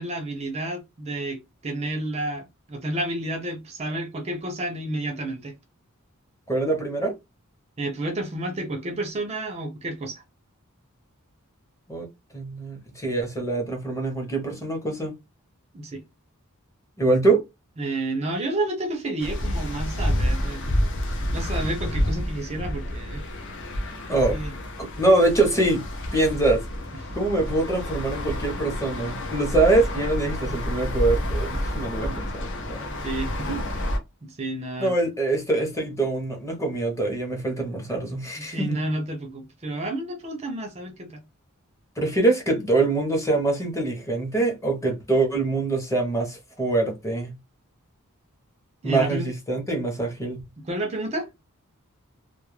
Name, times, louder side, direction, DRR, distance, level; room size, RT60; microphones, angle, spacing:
voice 1, 0.0-5.5 7.8-10.2 15.7-16.0 17.8-23.2 24.3-24.5 32.1-32.2 33.0-33.9 34.2-34.9 38.3-41.2 48.8-49.3 50.6-51.3, right 1 dB, 30° right, 0.5 m, -31 dB
voice 2, 6.5-7.2 11.9-12.1 12.3-15.1 17.0-17.4 24.1-24.4 24.8-25.8 26.1-26.6 27.1-32.3 32.7-32.8 33.5-33.6 34.8-38.8 42.0-47.4 48.8-50.4, right 2 dB, 15° left, 0.7 m, -24 dB
sound 1, 19.2-34.0, left 1 dB, 60° left, 0.6 m, -29 dB
2.2 x 2.1 x 3.1 m
head